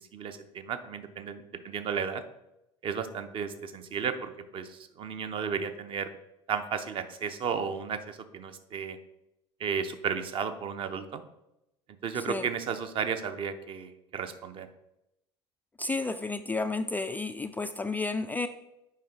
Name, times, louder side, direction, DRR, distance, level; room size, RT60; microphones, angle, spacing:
voice 1, 0.1-2.2 2.8-6.1 6.5-9.0 9.6-11.2 12.0-14.7, right 6 dB, 35° right, 9 dB, 0.7 m, -34 dB
voice 2, 12.2-12.5 15.8-18.5, left 3 dB, 10° left, 8 dB, 0.3 m, -31 dB
7.5 x 5.0 x 4.3 m, 0.88 s
figure-of-eight pair, 70°, 15 cm